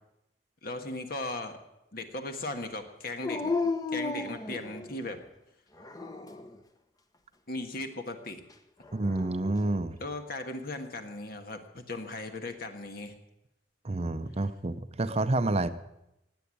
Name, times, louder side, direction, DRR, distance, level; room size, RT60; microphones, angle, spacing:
voice 1, 0.6-1.6 1.9-3.5 3.9-5.2 7.5-8.4 10.0-13.1, left 2 dB, 60° left, 6 dB, 1.7 m, -37 dB
Dog, 3.2-5.1 5.8-6.6 8.8-9.7, left 3 dB, 20° left, 1.0 m, -34 dB
voice 2, 8.9-10.0 13.8-15.7, right 2 dB, 35° right, 11 dB, 0.7 m, -29 dB
18.5 x 8.2 x 8.6 m, 0.87 s
head